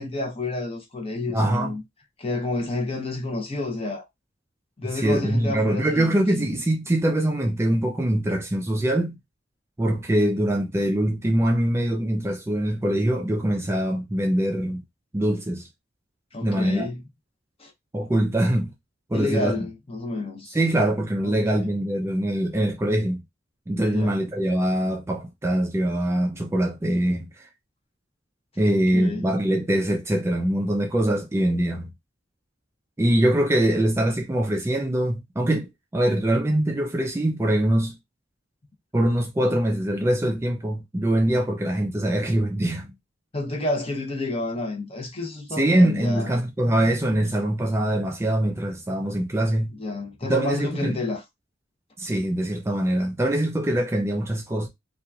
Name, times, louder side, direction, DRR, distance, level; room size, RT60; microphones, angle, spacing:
voice 1, 0.0-1.8 2.2-4.1 4.8-6.1 6.4-6.6 16.3-17.0 17.6-17.7 19.1-20.6 21.2-21.7 23.9-24.2 28.7-29.3 43.3-46.4 49.7-51.2, left 2 dB, 30° left, 0.8 m, -30 dB
voice 2, 1.3-1.8 4.8-9.2 9.8-14.8 15.1-15.7 16.4-16.9 17.9-18.7 19.1-19.7 20.5-23.2 23.7-27.5 28.6-31.9 33.0-37.9 38.9-42.9 45.6-49.7 50.2-51.0 52.0-54.7, right 1 dB, 15° right, 0.3 m, -23 dB
2.8 x 2.4 x 2.3 m
head